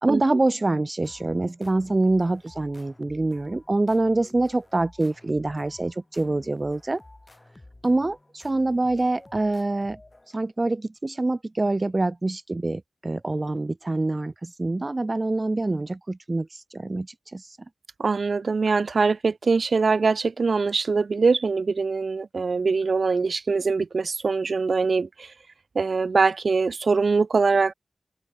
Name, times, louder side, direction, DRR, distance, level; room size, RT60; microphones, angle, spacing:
voice 1, 0.0-7.0 7.8-10.0 10.3-17.6, right 2 dB, 25° right, 0.6 m, -25 dB
sound 1, 1.0-10.6, left 2 dB, 20° left, 3.6 m, -51 dB
voice 2, 18.0-25.3 25.7-27.7, right 4 dB, 55° right, 1.2 m, -23 dB
wide cardioid pair, 120°, 0 cm